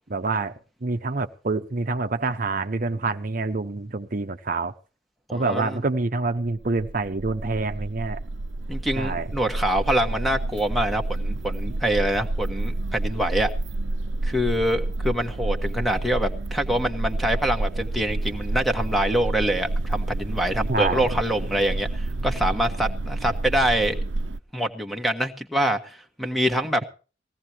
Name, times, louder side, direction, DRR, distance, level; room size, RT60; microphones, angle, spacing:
voice 1, 0.1-0.5 0.8-4.7 5.3-8.2 9.0-9.3 20.7-21.1, right 3 dB, 50° right, 0.8 m, -26 dB
voice 2, 5.3-5.8 8.7-13.5 14.2-24.0 24.5-26.8, right 1 dB, ahead, 1.4 m, -25 dB
sound 1, 6.4-24.4, right 2 dB, 85° right, 0.7 m, -29 dB
19.5 x 16.5 x 3.0 m
head